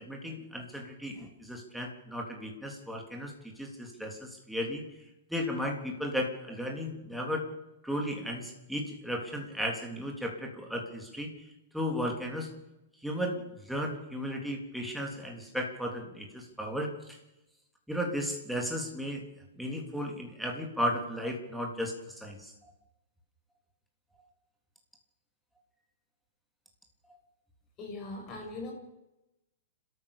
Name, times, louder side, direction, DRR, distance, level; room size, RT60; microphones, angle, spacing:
voice 1, 0.0-4.8 5.3-7.4 7.8-11.3 11.7-12.5 13.0-17.2 17.9-19.2 19.6-21.9 22.2-22.5, equal, ahead, 1 dB, 3.4 m, -35 dB
voice 2, 27.8-28.7, left 2 dB, 25° left, 1 dB, 7.0 m, -40 dB
30.0 x 13.5 x 6.8 m, 0.93 s
hypercardioid pair, 155°, 0 cm